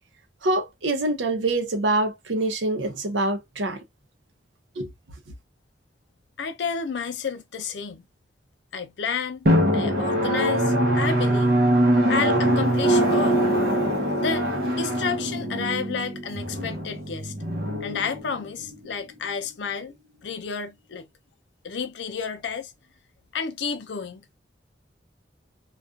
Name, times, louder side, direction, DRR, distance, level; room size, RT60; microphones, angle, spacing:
voice 1, 0.4-3.8 4.8-4.9, right 2 dB, 90° right, 0.7 m, -25 dB
voice 2, 6.4-8.1 8.7-9.5 9.7-11.5 12.1-13.4 14.2-17.3 17.8-19.9 20.2-21.1 21.6-22.7 23.3-24.2, left 5 dB, 75° left, 0.5 m, -31 dB
Drum, 9.5-18.7, right 1 dB, 55° right, 0.8 m, -23 dB
2.4 x 2.3 x 2.4 m
head